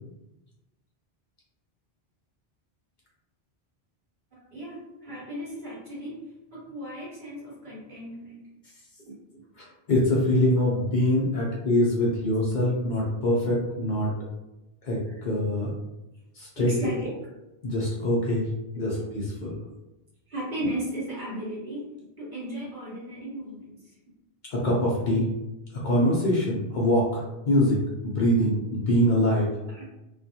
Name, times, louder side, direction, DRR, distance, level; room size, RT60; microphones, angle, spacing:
voice 1, 4.3-8.4 9.0-9.4 10.7-10.9 15.0-15.2 16.6-17.1 18.7-18.9 20.3-21.9 22.2-23.9 29.6-29.9, right 1 dB, 50° right, -6 dB, 1.1 m, -36 dB
voice 2, 9.6-14.1 14.8-15.7 16.3-16.7 17.6-18.5 18.7-19.5 24.5-25.3 25.8-29.5, left 1 dB, 55° left, -4 dB, 0.6 m, -24 dB
2.3 x 2.2 x 2.7 m, 0.96 s
omnidirectional pair, 1.1 m